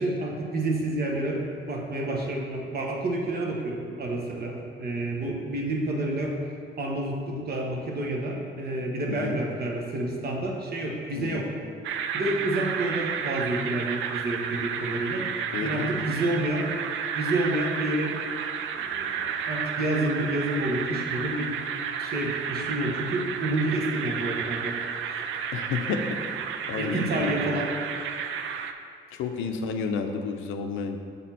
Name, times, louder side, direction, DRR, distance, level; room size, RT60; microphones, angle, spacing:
voice 1, 0.0-6.4 6.8-11.5 12.1-15.3 15.6-16.8 17.2-18.2 18.7-21.5 22.0-24.8 26.7-27.7, right 1 dB, 50° right, 0 dB, 1.1 m, -29 dB
voice 2, 9.1-9.4 11.2-11.5 15.5-16.0 25.5-26.3 26.7-27.5 29.1-31.0, left 5 dB, 90° left, 6 dB, 0.5 m, -31 dB
sound 1, 11.8-28.7, right 7 dB, 80° right, 0.4 m, -32 dB
6.8 x 4.2 x 4.3 m, 2.3 s
cardioid pair, 90°, 20 cm